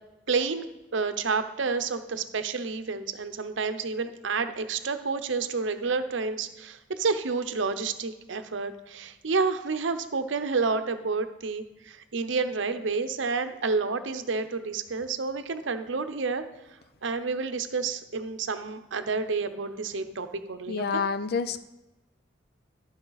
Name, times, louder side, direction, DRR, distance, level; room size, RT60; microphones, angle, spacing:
voice 1, 0.3-0.7 0.9-16.4 17.0-20.8, right 4 dB, 75° right, 9 dB, 0.7 m, -29 dB
voice 2, 20.7-21.6, left 5 dB, 55° left, 13 dB, 0.4 m, -28 dB
13.5 x 5.5 x 4.0 m, 1.0 s
head